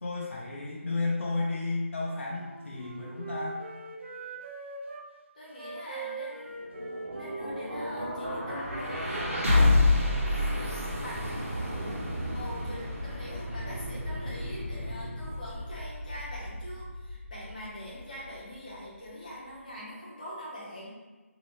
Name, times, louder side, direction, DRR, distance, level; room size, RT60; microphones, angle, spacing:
voice 1, 0.0-3.6, left 3 dB, 65° left, -4 dB, 0.6 m, -32 dB
Wind instrument woodwind instrument, 1.9-5.1 5.5-9.0, right 3 dB, 55° right, 0.5 m, -42 dB
voice 2, 5.3-6.6 7.1-9.4 10.9-11.2 12.3-21.0, left 1 dB, 35° left, -7 dB, 0.9 m, -43 dB
sound 1, 6.5-18.5, left 2 dB, 85° right, 1.2 m, -30 dB
3.0 x 2.8 x 3.0 m, 1.2 s
figure-of-eight pair, 180°, 8 cm